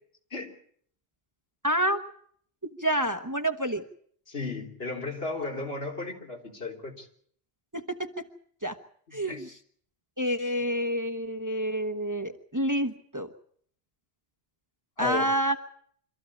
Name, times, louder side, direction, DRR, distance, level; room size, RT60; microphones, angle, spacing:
voice 1, 1.6-2.0 2.6-3.8 7.7-8.3 8.6-8.8 9.1-9.5 10.2-13.3 15.0-15.6, equal, 20° right, 7 dB, 1.1 m, -28 dB
voice 2, 4.3-7.1 9.3-9.4 15.0-15.3, left 3 dB, 70° left, 1 dB, 3.6 m, -34 dB
25.5 x 14.5 x 8.5 m, 0.64 s
omnidirectional pair, 1.0 m